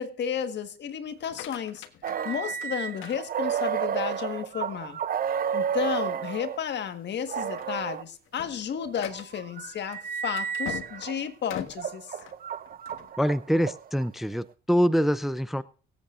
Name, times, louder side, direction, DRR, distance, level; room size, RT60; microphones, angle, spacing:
voice 1, 0.0-1.8 2.2-5.0 5.5-12.1, left 8 dB, 60° left, 1.6 m, -32 dB
sound 1, 1.1-3.9 4.4-4.8 5.3-5.4 5.8-6.0 6.6-6.9 7.3-13.1, left 11 dB, 85° left, 1.3 m, -43 dB
sound 2, 2.0-6.6 7.3-8.0 8.8-11.2 11.7-14.1, right 8 dB, 45° right, 0.6 m, -32 dB
voice 2, 13.2-15.6, equal, ahead, 0.5 m, -25 dB
24.0 x 8.4 x 2.5 m
cardioid pair, 90°, 20 cm